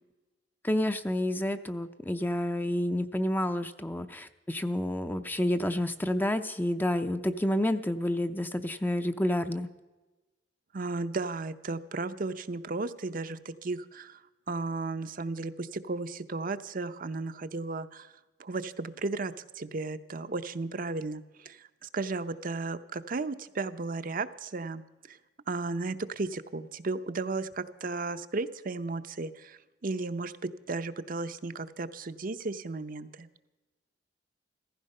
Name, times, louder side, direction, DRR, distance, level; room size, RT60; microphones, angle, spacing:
voice 1, 0.6-9.7, left 1 dB, 10° left, 10 dB, 0.6 m, -29 dB
voice 2, 10.7-14.2 14.5-18.1 18.4-24.8 25.1-25.2 25.5-30.3 30.7-33.3, right 3 dB, 50° right, 10 dB, 0.7 m, -34 dB
16.0 x 15.0 x 5.4 m, 1.2 s
head